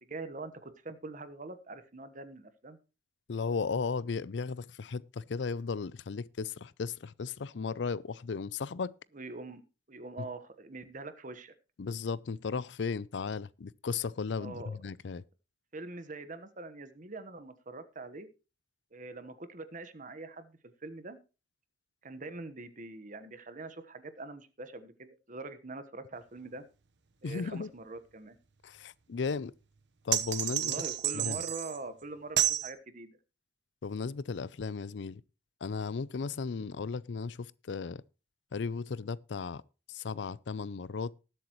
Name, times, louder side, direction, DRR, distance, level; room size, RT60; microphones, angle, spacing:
voice 1, 0.0-2.8 9.1-9.6 9.9-11.5 14.4-14.8 15.7-18.3 18.9-21.2 22.0-26.6 27.2-28.4 30.5-33.2, right 3 dB, 45° right, 1.2 m, -44 dB
voice 2, 3.3-8.9 10.2-10.3 11.8-15.2 27.2-27.7 28.6-29.5 30.0-30.7 31.1-31.4 33.8-35.2 35.6-38.0 38.5-39.6 39.9-41.1, left 5 dB, 75° left, 0.5 m, -35 dB
sound 1, 30.1-31.8 32.4-32.7, right 12 dB, 70° right, 1.1 m, -30 dB
19.5 x 8.0 x 3.1 m
head